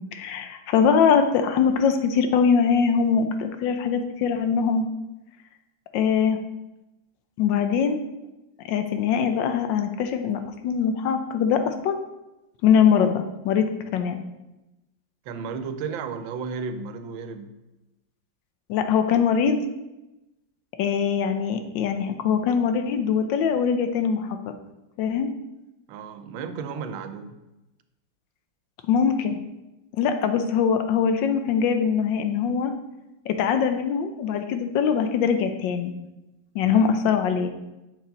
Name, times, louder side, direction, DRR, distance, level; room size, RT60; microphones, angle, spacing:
voice 1, 0.1-4.8 5.9-6.4 7.4-8.0 8.6-12.0 12.6-13.7 13.9-14.2 18.7-19.6 20.8-24.5 25.0-25.3 28.9-29.4 29.9-32.7 33.3-35.9 36.5-37.5, left 7 dB, 80° left, 7 dB, 1.3 m, -22 dB
voice 2, 15.2-17.6 25.9-27.4 36.6-37.0, right 5 dB, 90° right, 10 dB, 1.4 m, -34 dB
6.8 x 4.6 x 4.0 m, 0.98 s
omnidirectional pair, 2.1 m